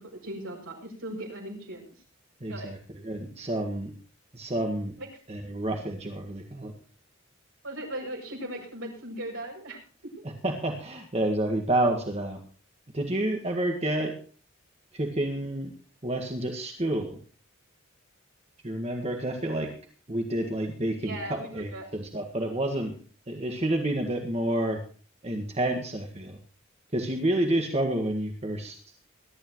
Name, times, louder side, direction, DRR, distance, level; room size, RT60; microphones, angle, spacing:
voice 1, 0.0-1.8 2.5-2.7 5.0-5.1 7.6-9.8 21.0-21.8, right 1 dB, 75° right, -1 dB, 7.2 m, -38 dB
voice 2, 2.4-2.8 3.0-3.9 4.3-4.9 5.3-6.7 10.4-12.4 12.9-14.1 14.9-15.7 16.0-17.2 18.6-19.7 20.1-22.9 23.3-24.8 25.2-26.4 26.9-28.8, right 1 dB, 30° right, 3 dB, 1.7 m, -29 dB
21.5 x 12.0 x 3.1 m, 0.39 s
head